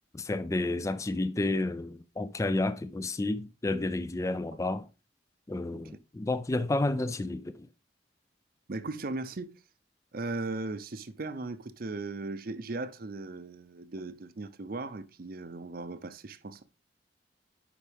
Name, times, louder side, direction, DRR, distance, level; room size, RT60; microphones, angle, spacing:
voice 1, 0.1-4.9 5.5-7.7, left 2 dB, 15° left, 0.3 m, -31 dB
voice 2, 8.7-9.5 10.1-16.6, right 3 dB, 50° right, 0.6 m, -37 dB
9.9 x 5.0 x 3.4 m
head